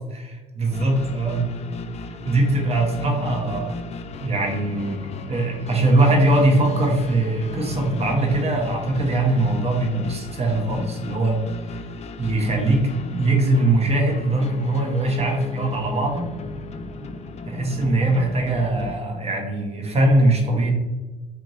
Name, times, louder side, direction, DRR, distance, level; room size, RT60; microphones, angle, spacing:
voice 1, 0.1-1.5 2.1-3.8 4.2-5.0 5.3-11.4 12.2-16.3 17.0-17.1 17.5-20.7, right 2 dB, 35° right, 1 dB, 1.0 m, -21 dB
sound 1, 0.7-18.9, left 3 dB, 40° left, 0.4 m, -35 dB
3.4 x 3.0 x 2.6 m, 1.2 s
supercardioid pair, 80°, 18 cm